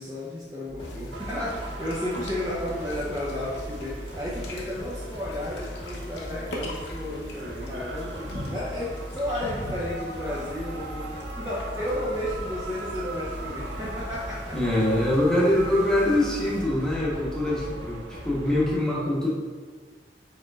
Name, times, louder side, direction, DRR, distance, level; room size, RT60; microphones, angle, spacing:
voice 1, 0.0-15.0, left 1 dB, 20° right, -7 dB, 0.6 m, -33 dB
sound 1, 0.7-18.7, equal, 25° left, 1.0 m, -39 dB
sound 2, 0.8-16.6, left 1 dB, 75° left, 0.8 m, -43 dB
sound 3, 1.1-18.7, right 2 dB, 90° right, 0.5 m, -41 dB
voice 2, 14.5-19.3, left 1 dB, 5° left, -6 dB, 1.0 m, -24 dB
4.9 x 4.2 x 2.4 m, 1.4 s
head